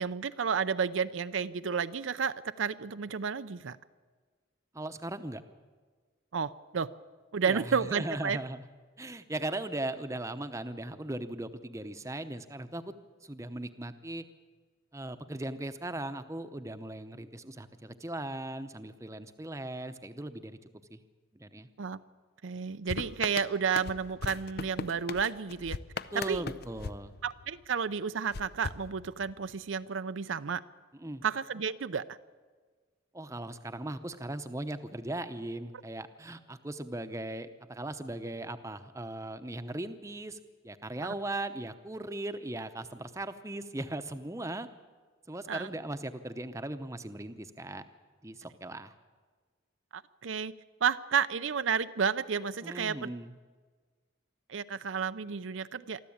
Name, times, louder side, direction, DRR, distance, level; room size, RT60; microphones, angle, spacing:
voice 1, 0.0-3.8 6.3-6.9 7.3-8.4 21.8-22.0 22.4-25.8 26.3-26.4 27.2-30.6 31.2-32.2 41.0-41.1 45.5-45.7 49.9-50.5 50.8-53.1 54.5-56.0, right 6 dB, 80° right, 12 dB, 0.6 m, -31 dB
voice 2, 4.7-5.4 7.4-8.6 9.0-12.9 13.2-14.2 14.9-20.6 20.9-21.0 21.3-21.7 26.1-27.1 30.9-31.2 33.1-40.4 40.6-44.7 45.3-47.8 48.2-48.9 52.6-53.3, right 1 dB, 15° right, 9 dB, 0.8 m, -38 dB
sound 1, 22.9-27.7 28.3-29.6, left 4 dB, 50° left, 0.6 m, -40 dB
24.0 x 13.5 x 8.7 m, 1.5 s
head